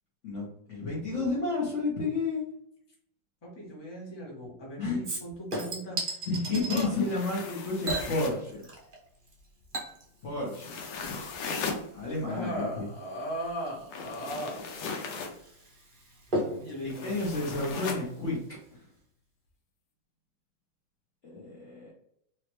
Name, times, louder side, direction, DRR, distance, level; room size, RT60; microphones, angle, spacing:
voice 1, 0.2-2.4 4.8-5.0 6.3-8.7 10.2-10.7 11.9-12.9 16.8-18.4 21.2-21.9, left 3 dB, 50° left, -5 dB, 0.9 m, -31 dB
voice 2, 3.4-6.2 6.7-6.9 12.3-14.6 16.6-17.3, equal, 25° left, -3 dB, 0.6 m, -38 dB
Chink clink / Liquid, 5.0-6.9 7.8-9.0 9.3-18.3 18.6-18.7, right 1 dB, 55° right, 0.5 m, -38 dB
sound 1, 6.8-8.5 10.5-11.9 13.9-15.4 16.9-18.1, left 5 dB, 75° left, 1.3 m, -37 dB
3.1 x 3.1 x 3.0 m, 0.72 s
omnidirectional pair, 2.2 m